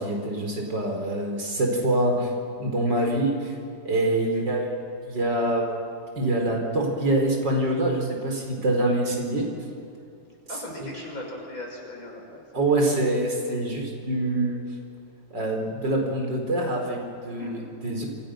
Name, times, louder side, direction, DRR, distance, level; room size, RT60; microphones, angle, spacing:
voice 1, 0.0-2.3 2.6-3.3 3.8-4.7 5.0-5.7 6.1-9.5 12.5-14.6 15.3-18.1, right 1 dB, 80° right, 1 dB, 5.1 m, -25 dB
voice 2, 10.5-13.0 17.4-17.6, left 1 dB, 50° left, -1 dB, 6.6 m, -39 dB
28.0 x 27.0 x 6.5 m, 2.5 s
omnidirectional pair, 1.9 m